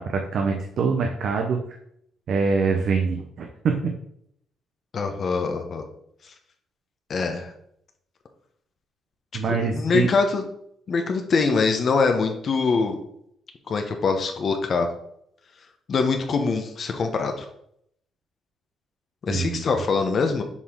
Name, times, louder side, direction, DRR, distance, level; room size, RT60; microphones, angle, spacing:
voice 1, 0.0-1.6 2.3-3.7 9.3-10.1 19.3-19.6, right 5 dB, 65° right, 3 dB, 0.8 m, -24 dB
voice 2, 4.9-5.8 6.2-6.3 7.1-7.5 9.5-10.4 10.9-13.0 13.7-14.9 15.9-17.4 19.2-20.4, left 4 dB, 50° left, 5 dB, 0.8 m, -23 dB
7.2 x 4.3 x 3.7 m, 0.72 s
cardioid pair, 90°, 0 cm